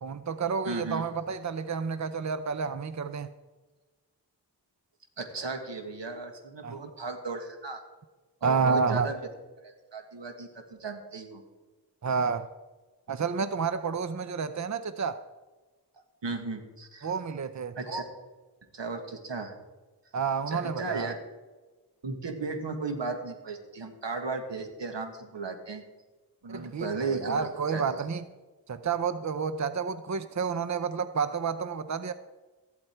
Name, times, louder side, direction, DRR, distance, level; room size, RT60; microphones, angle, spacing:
voice 1, 0.0-3.3 6.6-6.8 8.4-9.1 12.0-12.5 13.1-15.2 17.0-17.8 20.1-21.1 26.5-28.2 28.7-32.1, right 5 dB, 40° right, 12 dB, 0.6 m, -30 dB
voice 2, 0.7-1.1 5.2-7.8 8.4-9.2 9.6-11.4 16.2-17.1 17.8-18.0 18.7-19.5 20.5-21.1 22.0-25.8 26.4-28.0, right 4 dB, 85° right, 6 dB, 1.7 m, -35 dB
14.0 x 11.5 x 4.4 m, 1.2 s
wide cardioid pair, 55°, 42 cm